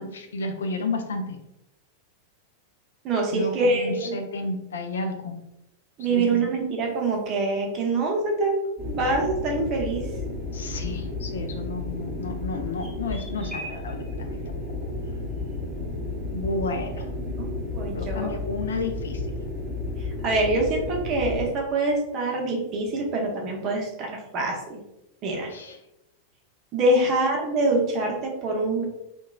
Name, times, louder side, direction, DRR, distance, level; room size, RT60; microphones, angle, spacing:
voice 1, 0.0-1.4 3.3-5.4 6.1-6.5 10.5-14.6 16.3-17.1 17.9-19.2 25.3-25.8, left 2 dB, 65° left, 5 dB, 0.3 m, -32 dB
voice 2, 3.0-4.2 6.0-10.1 17.4-18.3 20.0-24.8 25.2-25.5 26.7-28.8, right 2 dB, 35° right, 0 dB, 0.6 m, -25 dB
sound 1, 8.8-21.5, left 2 dB, ahead, 0.8 m, -32 dB
2.8 x 2.2 x 2.3 m, 0.89 s
figure-of-eight pair, 90°, 0 cm